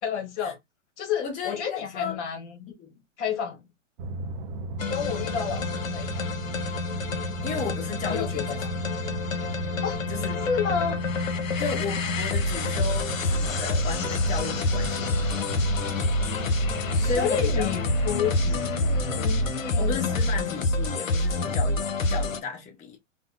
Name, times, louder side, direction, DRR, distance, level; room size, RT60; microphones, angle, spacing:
voice 1, 0.0-0.6 1.0-2.7 3.2-3.6 4.9-6.3 8.1-8.8 9.8-10.0 10.5-11.0 16.9-20.5, left 7 dB, 60° left, 1.1 m, -30 dB
voice 2, 1.2-2.2 2.8-3.0 7.4-8.4 10.1-10.4 11.6-15.5 17.0-17.7 18.4-18.6 19.8-23.0, left 5 dB, 20° left, 0.8 m, -34 dB
sound 1, 4.0-19.5, right 2 dB, 40° right, 0.5 m, -34 dB
sound 2, 4.8-22.4, left 2 dB, 85° left, 0.7 m, -28 dB
3.5 x 2.0 x 2.3 m
hypercardioid pair, 120°, 39 cm